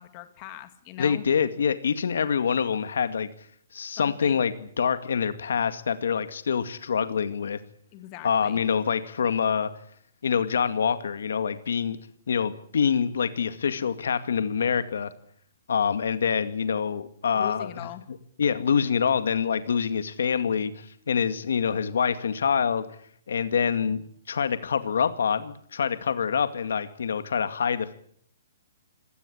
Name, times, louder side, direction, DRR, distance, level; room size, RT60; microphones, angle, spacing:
voice 1, 0.0-1.2 4.0-4.4 7.9-8.6 17.3-18.0, left 13 dB, 20° left, 10 dB, 2.0 m, -41 dB
voice 2, 1.0-3.3 3.7-7.6 8.2-9.7 10.2-12.0 12.3-15.1 15.7-17.9 18.4-22.8 23.3-27.9, left 7 dB, 80° left, 11 dB, 2.1 m, -26 dB
26.0 x 18.0 x 8.6 m, 0.63 s
hypercardioid pair, 180°, 0 cm